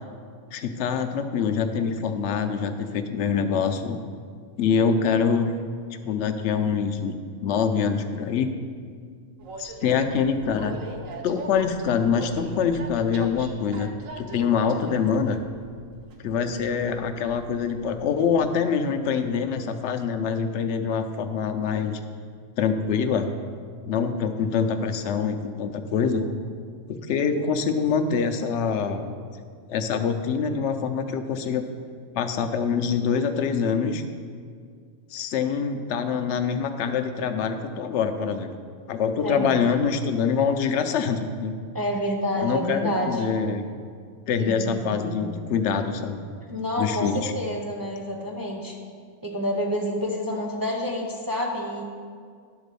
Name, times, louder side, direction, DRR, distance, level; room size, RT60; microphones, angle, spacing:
voice 1, 0.5-4.0 4.6-5.5 6.0-7.1 7.4-8.5 9.6-10.8 11.2-15.4 16.2-22.0 22.6-23.3 23.9-26.2 27.0-29.0 29.7-31.6 32.1-34.0 35.1-38.5 38.9-41.6 42.4-43.6 44.3-46.2 46.8-47.3, left 6 dB, 60° left, 7 dB, 0.9 m, -25 dB
Train, 9.4-18.0, right 3 dB, 70° right, 1.2 m, -41 dB
voice 2, 39.2-39.6 41.7-43.2 44.4-45.7 46.5-48.8 49.2-51.8, equal, 20° right, -1 dB, 0.7 m, -29 dB
11.0 x 4.0 x 6.8 m, 2.1 s
omnidirectional pair, 1.5 m